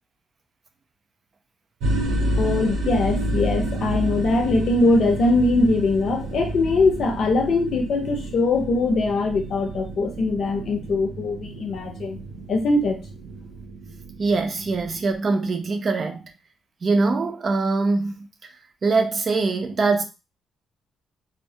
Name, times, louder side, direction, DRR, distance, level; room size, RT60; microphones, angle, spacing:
sound 1, 1.8-15.1, right 1 dB, 85° right, 0.6 m, -30 dB
voice 1, 2.4-12.2 12.5-13.0, left 3 dB, 60° left, 0.6 m, -21 dB
voice 2, 14.2-16.3 16.8-18.3 18.8-20.0, right 3 dB, 45° right, 0.5 m, -23 dB
2.2 x 2.1 x 2.7 m
cardioid pair, 90°, 0 cm